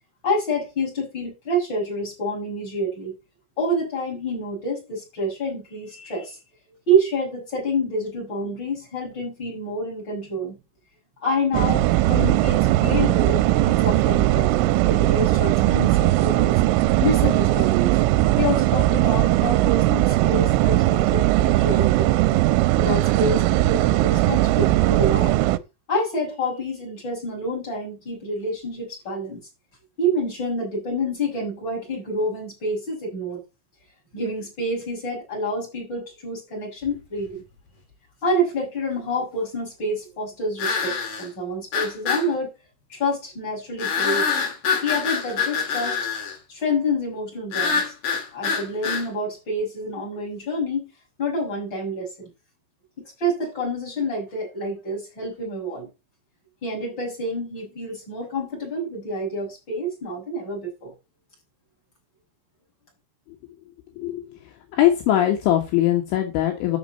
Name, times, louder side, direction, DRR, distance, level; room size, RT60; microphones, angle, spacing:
voice 1, 0.2-3.2 3.6-6.4 6.9-10.6 11.2-16.6 17.0-17.9 18.4-22.2 22.8-25.4 25.9-29.4 30.0-33.4 34.1-37.4 38.2-42.5 42.9-44.3 44.8-46.0 46.5-47.9 48.3-50.9 51.2-52.3 53.0-55.9 56.6-60.9, equal, 20° left, 6.9 m, -27 dB
sound 1, 11.5-25.6, right 16 dB, 80° right, 3.0 m, -19 dB
sound 2, 36.9-37.0 40.6-41.3 41.7-42.3 43.8-46.3 47.5-49.1, left 6 dB, 50° left, 4.4 m, -25 dB
voice 2, 64.7-66.8, left 12 dB, 75° left, 3.7 m, -21 dB
13.5 x 6.5 x 4.1 m
omnidirectional pair, 5.8 m